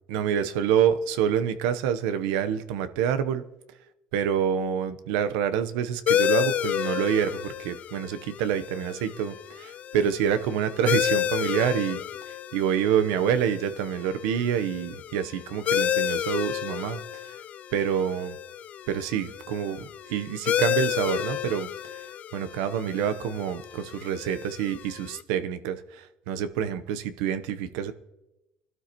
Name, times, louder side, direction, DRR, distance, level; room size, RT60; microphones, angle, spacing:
voice 1, 0.1-3.4 4.1-12.0 12.3-17.4 17.7-18.4 18.9-22.1 22.3-27.9, right 8 dB, 85° right, 11 dB, 0.8 m, -27 dB
sound 1, 6.1-25.2, left 10 dB, 50° left, 0.5 m, -31 dB
21.0 x 12.5 x 3.0 m, 0.97 s
supercardioid pair, 105°, 3 cm